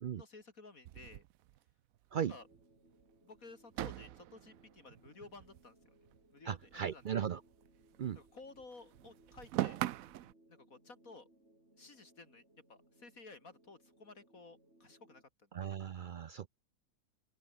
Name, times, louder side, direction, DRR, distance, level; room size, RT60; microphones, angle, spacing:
voice 1, 0.1-1.2 2.3-2.5 3.2-5.9 6.3-7.3 8.1-9.8 10.5-11.3 11.8-12.4 12.7-15.2 15.6-15.7, left 3 dB, 70° left, 3.4 m, -55 dB
sound 1, 0.8-2.2 2.5-2.6 2.9-3.0 3.7-6.2 6.5-8.3 8.6-10.3, right 14 dB, 75° right, 1.0 m, -42 dB
sound 2, 2.2-15.2, right 1 dB, 45° right, 8.2 m, -67 dB
voice 2, 6.5-7.4 8.0-8.2 15.5-16.5, right 8 dB, 90° right, 0.4 m, -37 dB
open air
omnidirectional pair, 1.5 m